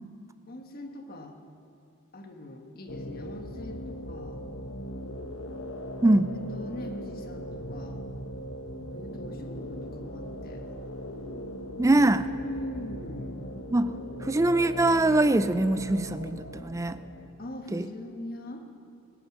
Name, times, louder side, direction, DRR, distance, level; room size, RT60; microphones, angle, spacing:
voice 1, 0.5-1.3 2.1-4.4 6.3-8.0 8.9-10.7 12.3-13.4 17.4-18.6, left 1 dB, 45° left, 4 dB, 1.4 m, -42 dB
sound 1, 2.9-17.3, equal, 80° left, 1.1 m, -39 dB
voice 2, 11.8-12.3 13.7-13.9 14.2-17.0 17.7-17.8, right 2 dB, 15° right, 13 dB, 0.4 m, -23 dB
25.0 x 9.0 x 6.1 m, 2.5 s
head